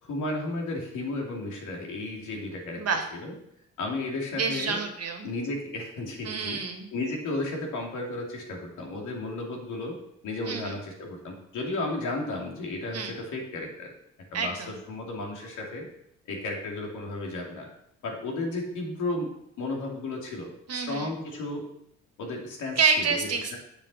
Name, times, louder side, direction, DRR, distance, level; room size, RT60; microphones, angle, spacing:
voice 1, 0.0-2.8 3.1-3.3 3.8-4.8 5.2-6.6 6.9-10.0 10.2-13.9 14.3-15.9 16.3-17.7 18.0-19.3 19.6-21.7 22.2-22.8 23.5-23.6, left 2 dB, 80° left, 0 dB, 2.7 m, -33 dB
voice 2, 4.4-5.3 6.3-6.9 10.5-10.7 12.9-13.2 14.3-14.8 20.7-21.1 22.8-23.6, right 5 dB, 55° right, 6 dB, 1.7 m, -28 dB
7.3 x 7.2 x 5.6 m, 0.76 s
cardioid pair, 90°, 30 cm